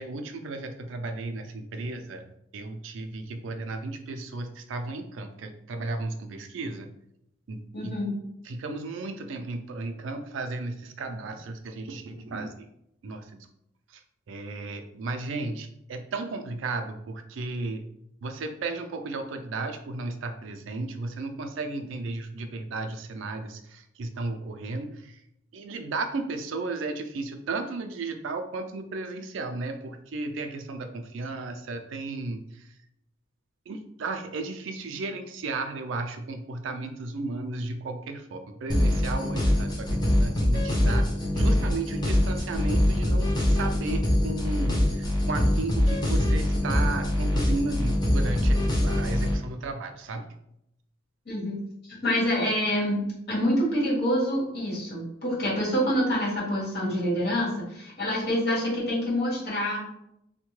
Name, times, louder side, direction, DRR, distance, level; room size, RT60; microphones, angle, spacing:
voice 1, 0.0-2.2 2.5-6.9 7.5-8.0 8.4-12.7 13.0-13.5 13.9-14.0 14.3-17.8 18.2-25.2 25.5-32.7 33.7-41.1 41.3-50.3, right 3 dB, 75° right, 6 dB, 0.4 m, -34 dB
voice 2, 7.7-8.1 51.2-51.6 51.9-53.0 53.3-59.8, equal, 55° left, -5 dB, 1.4 m, -26 dB
sound 1, 38.7-49.4, left 1 dB, 20° left, 0.5 m, -24 dB
3.5 x 2.2 x 3.0 m, 0.79 s
head